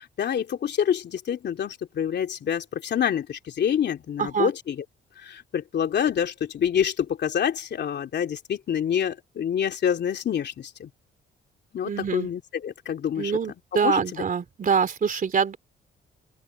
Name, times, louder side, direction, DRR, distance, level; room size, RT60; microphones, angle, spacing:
voice 1, 0.0-4.8 5.2-10.9 11.7-13.3 13.8-14.0, left 8 dB, 60° left, 3.0 m, -27 dB
voice 2, 4.2-4.5 11.8-12.3 13.2-15.6, right 6 dB, 45° right, 3.3 m, -25 dB
open air
cardioid pair, 90°, 20 cm